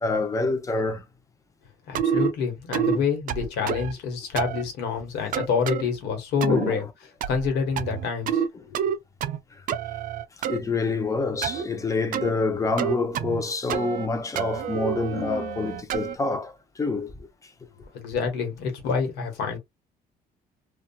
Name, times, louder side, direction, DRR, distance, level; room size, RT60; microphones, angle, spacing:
voice 1, 0.0-1.0 6.5-6.8 10.5-16.5 16.8-17.1, left 3 dB, 20° left, 0.7 m, -27 dB
voice 2, 1.9-6.8 7.3-8.4 8.7-8.8 17.9-19.6, left 5 dB, 85° left, 1.2 m, -27 dB
sound 1, 1.9-2.3 2.7-3.0 3.3-3.9 4.4-4.6 5.3-5.8 6.4-6.7 7.2-7.5 7.8-8.5 8.7-9.4 9.7-10.6 11.4-11.7 12.1-12.3 12.8-13.4 13.7-14.1 14.4-16.2, right 8 dB, 55° right, 0.4 m, -28 dB
2.7 x 2.3 x 2.3 m
cardioid pair, 110°, 17 cm